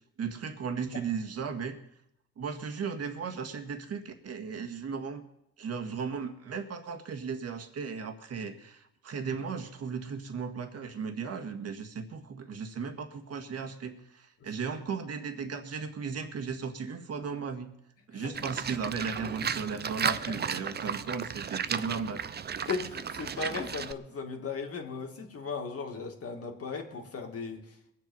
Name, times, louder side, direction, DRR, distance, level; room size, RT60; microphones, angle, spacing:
voice 1, 0.2-1.8 2.4-5.2 5.6-17.7 18.1-22.2, right 5 dB, 55° right, 6 dB, 1.8 m, -36 dB
Livestock farm animals working animals, 18.3-23.9, right 7 dB, 35° right, 0.6 m, -34 dB
voice 2, 20.0-20.3 22.6-27.9, left 5 dB, 50° left, 3 dB, 2.4 m, -37 dB
22.0 x 7.9 x 5.5 m, 0.78 s
cardioid pair, 90°, 30 cm